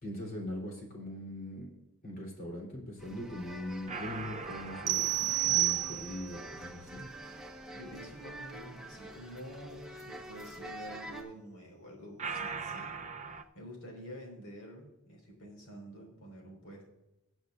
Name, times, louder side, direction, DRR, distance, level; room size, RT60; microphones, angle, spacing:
voice 1, 0.0-1.7 2.0-7.0, left 1 dB, 40° left, -1 dB, 3.4 m, -41 dB
sound 1, 3.0-11.2, right 1 dB, ahead, 1.2 m, -47 dB
sound 2, 3.9-7.2 12.2-13.4, right 5 dB, 30° right, 0.6 m, -42 dB
sound 3, 4.9-6.4, right 16 dB, 80° right, 0.4 m, -29 dB
voice 2, 7.7-16.9, equal, 70° left, 0 dB, 4.7 m, -49 dB
20.5 x 8.2 x 2.5 m, 0.92 s
head